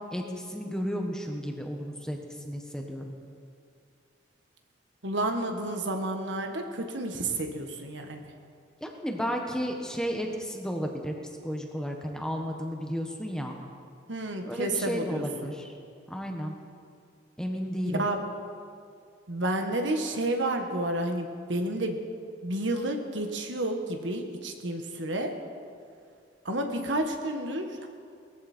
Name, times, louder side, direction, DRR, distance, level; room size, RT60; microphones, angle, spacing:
voice 1, 0.1-2.2 2.4-3.1 8.8-11.1 11.4-13.6 14.5-15.7 16.1-16.6 17.4-18.1, equal, 5° left, 2 dB, 1.4 m, -33 dB
voice 2, 5.0-8.2 14.1-15.5 17.9-18.2 19.3-22.0 22.4-25.3 26.4-27.9, right 1 dB, 75° right, 4 dB, 1.6 m, -30 dB
20.0 x 15.0 x 4.5 m, 2.3 s
head